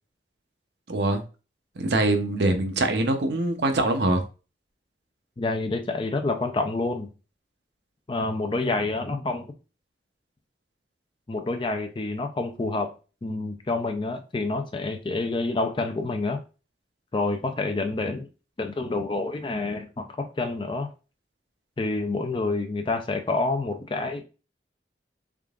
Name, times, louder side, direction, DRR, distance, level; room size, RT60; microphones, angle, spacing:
voice 1, 0.9-1.2 1.8-4.2, right 2 dB, 70° right, 0.7 m, -23 dB
voice 2, 5.4-7.1 8.1-9.5 11.3-12.9 13.2-16.4 17.1-18.3 18.6-20.9 21.8-24.2, left 3 dB, 30° left, 0.4 m, -28 dB
3.6 x 3.6 x 2.4 m
head